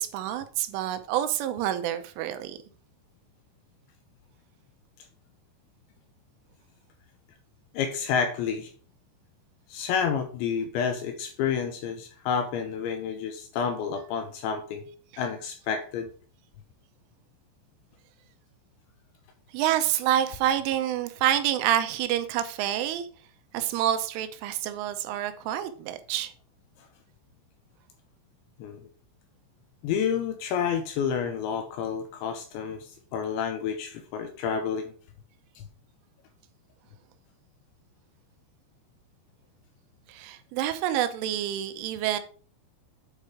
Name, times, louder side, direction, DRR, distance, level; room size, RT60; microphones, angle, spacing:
voice 1, 0.0-2.6 19.5-23.1 23.5-26.3 40.1-42.2, right 11 dB, 85° right, 3.1 m, -27 dB
voice 2, 7.7-8.7 9.7-14.9 15.2-16.1 28.6-28.8 29.8-34.9 35.6-35.7, left 7 dB, 80° left, 2.8 m, -29 dB
9.0 x 4.6 x 4.7 m
omnidirectional pair, 5.9 m